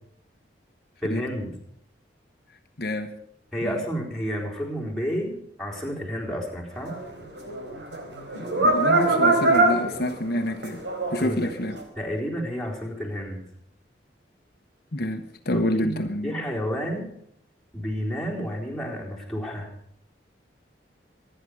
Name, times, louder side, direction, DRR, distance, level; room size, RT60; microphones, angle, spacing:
voice 1, 1.0-1.5 3.5-6.9 11.2-11.5 12.0-13.4 15.5-17.1 17.7-19.7, equal, ahead, 4.1 m, -31 dB
voice 2, 2.8-3.2 3.6-3.8 8.6-10.8 11.1-11.8 14.9-16.3, left 1 dB, 55° left, 1.1 m, -27 dB
sound 1, 6.8-11.3 11.8-11.9, right 2 dB, 75° right, 4.3 m, -23 dB
25.5 x 10.0 x 5.0 m
head